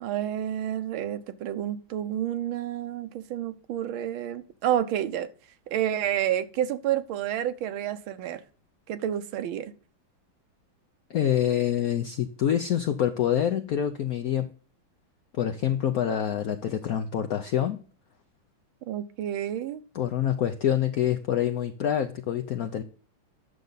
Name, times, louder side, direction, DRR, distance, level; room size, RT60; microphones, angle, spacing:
voice 1, 0.0-5.3 5.7-8.4 8.9-9.7 18.9-19.8, right 11 dB, 80° right, 1.5 m, -29 dB
voice 2, 11.1-14.5 15.4-17.8 19.9-22.8, left 10 dB, 75° left, 0.8 m, -26 dB
9.5 x 6.7 x 3.9 m
omnidirectional pair, 2.2 m